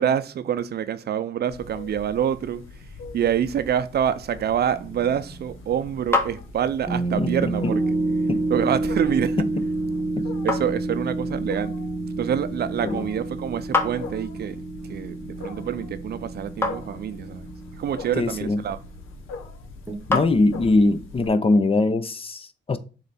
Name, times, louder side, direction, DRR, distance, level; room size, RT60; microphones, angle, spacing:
voice 1, 0.0-2.7 3.1-7.8 8.5-9.4 10.4-11.7 12.2-17.5 17.8-18.8, right 9 dB, 55° right, 0.5 m, -26 dB
Wild animals, 1.5-21.3, left 3 dB, 85° left, 1.1 m, -42 dB
sound 1, 4.7-5.7 6.9-18.6 19.9-20.0, right 2 dB, 10° right, 1.0 m, -29 dB
sound 2, 5.2-21.0, left 3 dB, 10° left, 1.0 m, -34 dB
voice 2, 7.2-7.5 8.3-8.4 9.4-9.5 10.2-10.3 12.8-13.1 18.2-18.7 20.1-22.8, left 2 dB, 30° left, 0.6 m, -22 dB
6.8 x 3.3 x 4.1 m
cardioid pair, 90°, 20 cm